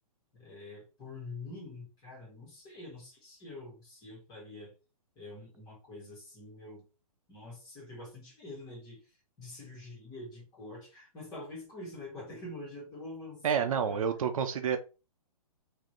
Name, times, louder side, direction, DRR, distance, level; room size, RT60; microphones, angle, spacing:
voice 1, 0.3-4.7 5.2-6.8 7.3-9.0 9.4-14.0, left 2 dB, 20° left, -2 dB, 2.0 m, -46 dB
voice 2, 13.4-14.8, right 7 dB, 65° right, 8 dB, 0.7 m, -29 dB
3.8 x 2.8 x 3.2 m, 0.31 s
hypercardioid pair, 150°, 19 cm